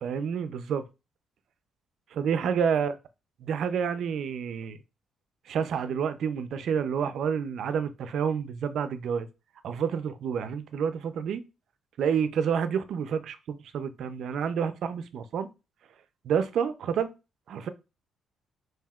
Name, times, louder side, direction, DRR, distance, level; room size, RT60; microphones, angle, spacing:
voice 1, 0.0-0.9 2.1-2.9 3.4-4.8 5.5-9.3 9.6-11.4 12.0-15.5 16.2-17.1 17.5-17.7, right 7 dB, 70° right, 0.4 m, -29 dB
5.5 x 2.7 x 2.3 m
cardioid pair, 90°, 0 cm